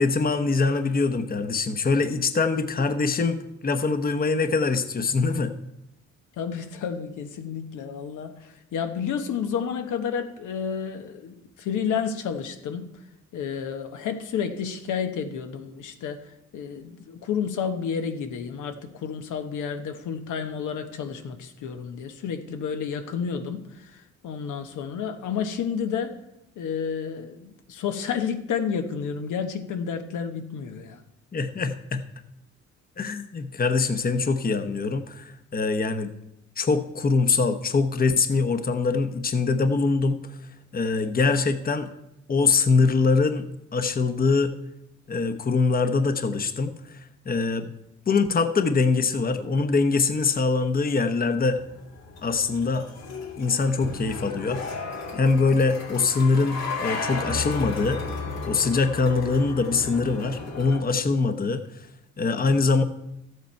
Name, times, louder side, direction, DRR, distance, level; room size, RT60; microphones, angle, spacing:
voice 1, 0.0-5.5 31.3-32.0 33.0-36.1 36.6-40.4 40.7-41.9 42.3-44.5 45.1-47.7 48.1-51.6 52.2-52.9 53.4-54.6 55.1-58.0 58.5-61.9 62.2-62.8, left 4 dB, 30° left, 9 dB, 1.0 m, -23 dB
voice 2, 6.4-12.9 13.3-26.2 26.6-31.0, left 7 dB, 80° left, 6 dB, 1.2 m, -31 dB
sound 1, 51.5-60.8, left 3 dB, 60° left, 2.6 m, -34 dB
13.0 x 8.2 x 4.5 m, 0.85 s
cardioid pair, 90°, 30 cm